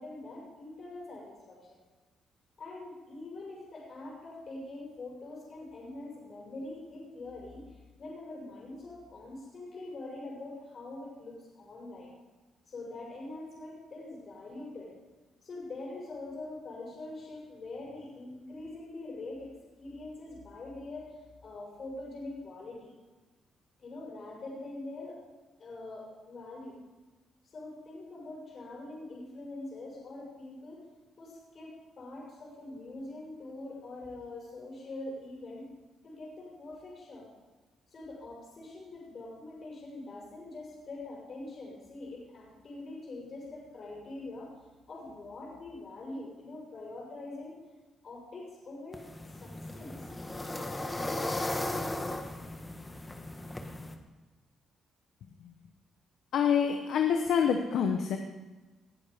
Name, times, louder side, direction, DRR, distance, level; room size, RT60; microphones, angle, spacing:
voice 1, 0.0-1.6 2.6-12.1 12.7-14.9 15.4-19.5 19.8-22.9 23.8-25.2 25.6-26.7 27.4-30.8 31.2-35.7 36.0-37.3 37.9-47.5 48.0-49.0 49.3-50.1, left 2 dB, 50° left, -4 dB, 6.1 m, -44 dB
sound 1, 48.9-53.9, left 1 dB, 15° left, 1.6 m, -36 dB
voice 2, 56.3-58.2, left 7 dB, 75° left, 5 dB, 1.2 m, -26 dB
19.5 x 10.5 x 5.3 m, 1.2 s
cardioid pair, 90°, 0 cm